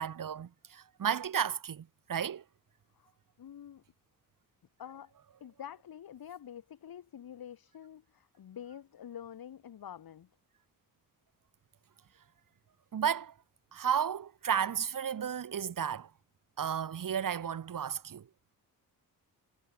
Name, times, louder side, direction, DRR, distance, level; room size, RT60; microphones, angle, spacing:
voice 1, 0.0-2.4 12.9-13.3 13.7-16.1 16.6-18.3, right 8 dB, 65° right, 3.5 m, -33 dB
voice 2, 3.4-3.8 4.8-5.1 5.4-10.3, left 9 dB, 90° left, 7.2 m, -47 dB
wide cardioid pair, 130°, 35 cm